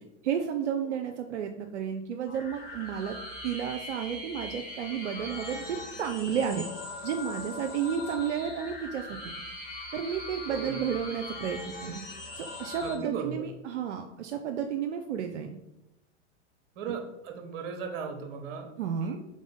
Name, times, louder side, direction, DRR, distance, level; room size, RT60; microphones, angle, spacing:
voice 1, 0.2-3.2 3.4-6.6 7.0-9.2 9.9-12.0 12.4-15.6 18.8-19.2, right 8 dB, 80° right, 4 dB, 0.5 m, -32 dB
sound 1, 2.3-12.9, left 2 dB, 25° left, 1.7 m, -41 dB
voice 2, 10.5-10.8 12.8-13.5 16.7-18.7 19.0-19.2, right 6 dB, 55° right, 4 dB, 1.0 m, -37 dB
3.7 x 3.6 x 3.9 m, 0.93 s
hypercardioid pair, 95°, 34 cm